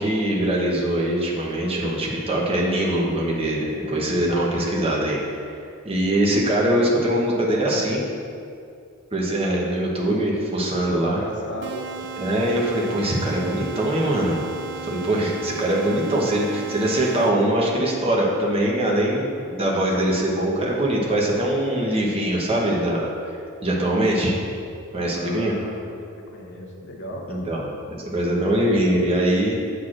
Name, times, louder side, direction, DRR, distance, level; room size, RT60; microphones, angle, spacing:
voice 1, 0.0-5.4 5.8-8.1 9.1-11.2 12.2-14.4 14.8-24.3 24.9-25.6 27.3-27.6 27.9-29.6, right 1 dB, 25° right, -3 dB, 0.9 m, -22 dB
voice 2, 10.9-11.9 25.1-26.0 26.3-27.4, equal, 55° left, 0 dB, 0.7 m, -36 dB
sound 1, 11.6-17.6, right 5 dB, 55° right, 0.5 m, -36 dB
8.1 x 6.1 x 2.5 m, 2.4 s
head